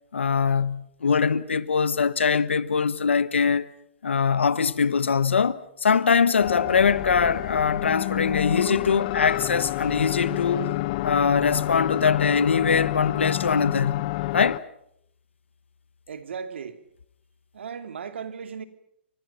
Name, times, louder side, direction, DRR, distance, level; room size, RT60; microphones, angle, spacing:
voice 1, 0.1-3.7 4.0-10.7 11.0-14.1 14.3-14.6, left 6 dB, 90° left, 1.2 m, -22 dB
sound 1, 6.4-14.6, left 17 dB, 45° left, 0.9 m, -28 dB
voice 2, 16.1-16.8 17.5-18.6, right 6 dB, 75° right, 2.6 m, -36 dB
29.5 x 25.0 x 5.8 m
hypercardioid pair, 135°, 6 cm